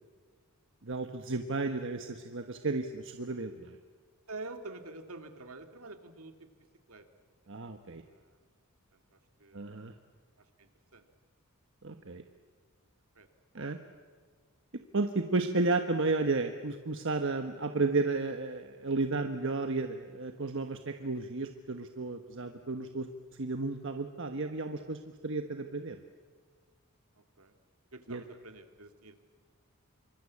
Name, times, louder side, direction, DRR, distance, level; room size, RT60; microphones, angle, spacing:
voice 1, 0.8-3.8 7.5-8.0 9.5-9.9 11.8-12.2 13.5-13.8 14.9-23.1 23.4-26.0 28.1-28.2, right 3 dB, 60° right, 6 dB, 1.2 m, -33 dB
voice 2, 4.3-6.5 6.9-7.1 7.6-7.8 8.0-8.4 8.9-9.7 10.4-11.1 13.2-13.3 27.2-27.5 27.9-29.1, right 2 dB, 75° right, 7 dB, 2.3 m, -48 dB
27.0 x 24.5 x 8.6 m, 1.5 s
head